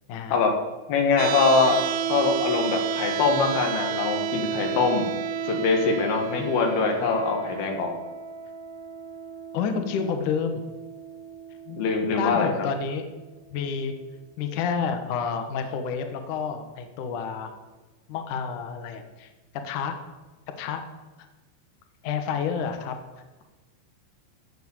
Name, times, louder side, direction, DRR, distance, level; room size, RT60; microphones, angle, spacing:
voice 1, 0.1-0.5 6.3-6.8 9.5-10.6 12.2-13.1 13.5-13.9 14.4-17.5 18.1-19.3 19.6-20.0 20.6-20.8 22.0-23.0, left 6 dB, 85° left, 6 dB, 1.7 m, -29 dB
voice 2, 0.9-1.8 2.1-5.1 5.4-7.9 11.7-12.5, left 4 dB, 60° left, 3 dB, 3.3 m, -23 dB
sound 1, 1.2-13.2, right 8 dB, 85° right, 2.8 m, -32 dB
14.0 x 7.5 x 7.2 m, 1.2 s
omnidirectional pair, 5.6 m